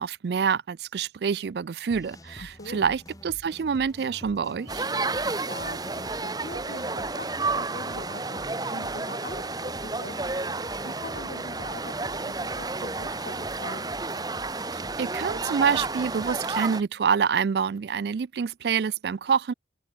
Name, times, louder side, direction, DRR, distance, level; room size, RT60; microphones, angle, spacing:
voice 1, 0.0-4.9 14.7-19.5, right 6 dB, 60° right, 0.4 m, -27 dB
sound 1, 1.9-16.7, equal, 20° left, 4.4 m, -47 dB
voice 2, 2.4-2.9 5.1-10.3 10.7-14.0, left 2 dB, 55° left, 3.1 m, -42 dB
sound 2, 4.7-16.8, right 3 dB, 20° right, 1.4 m, -31 dB
open air
head